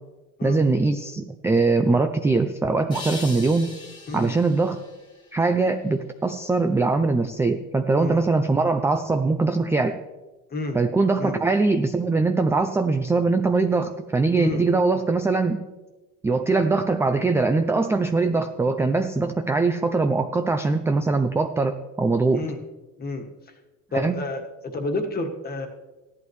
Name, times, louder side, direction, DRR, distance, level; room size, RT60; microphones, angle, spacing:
voice 1, 0.4-3.7 4.1-4.8 5.3-10.0 10.7-15.6 16.2-22.4 23.9-24.2, right 3 dB, 10° right, 7 dB, 0.3 m, -22 dB
sound 1, 2.9-6.0, left 2 dB, 15° left, 1.7 m, -41 dB
voice 2, 23.9-24.4 24.7-25.7, left 2 dB, 30° left, 3 dB, 1.5 m, -29 dB
15.5 x 11.0 x 3.2 m, 1.1 s
cardioid pair, 140°, 32 cm